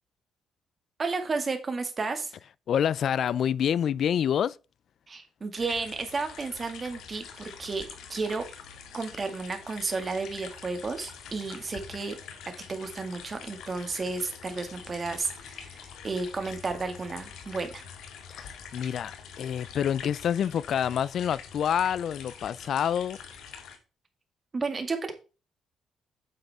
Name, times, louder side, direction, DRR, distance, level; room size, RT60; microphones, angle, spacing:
voice 1, 1.0-2.3 5.1-8.4 8.9-12.2 12.7-17.8 24.5-25.1, right 4 dB, 35° right, 2.0 m, -32 dB
voice 2, 2.7-4.6 18.3-19.1 19.4-23.2, left 9 dB, 65° left, 0.3 m, -27 dB
sound 1, 5.6-23.8, left 7 dB, 85° left, 2.0 m, -45 dB
9.1 x 7.5 x 3.5 m
cardioid pair, 90°, 0 cm